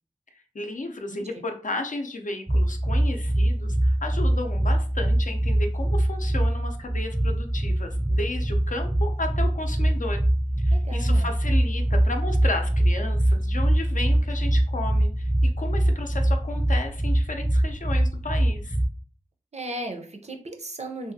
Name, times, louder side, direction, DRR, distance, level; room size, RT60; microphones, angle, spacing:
voice 1, 0.5-10.2 10.6-18.8, left 2 dB, 65° left, 5 dB, 0.5 m, -33 dB
sound 1, 2.5-18.9, right 1 dB, 5° right, 0.4 m, -23 dB
voice 2, 10.7-11.3 19.5-21.1, right 1 dB, 50° right, 3 dB, 0.6 m, -36 dB
2.7 x 2.4 x 2.6 m, 0.41 s
wide cardioid pair, 50°, 14 cm